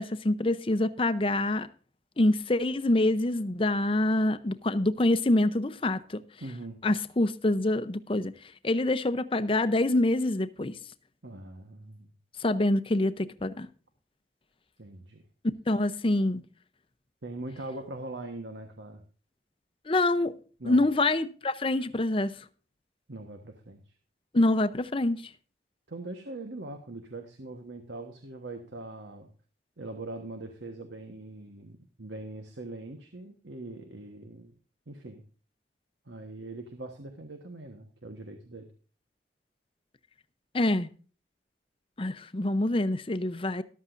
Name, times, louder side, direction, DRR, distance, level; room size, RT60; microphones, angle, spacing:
voice 1, 0.0-1.7 2.2-6.2 6.8-8.3 8.6-10.7 12.4-13.7 15.7-16.4 19.9-20.3 20.6-22.3 24.3-25.2 40.5-40.9 42.0-43.6, left 2 dB, 30° left, 0.7 m, -26 dB
voice 2, 6.4-6.8 11.2-12.1 14.8-15.2 17.2-19.0 20.6-20.9 23.1-23.9 25.9-29.3 29.8-34.5 34.9-35.2 36.0-38.7, right 2 dB, 85° right, 1.3 m, -42 dB
14.0 x 12.0 x 2.6 m
head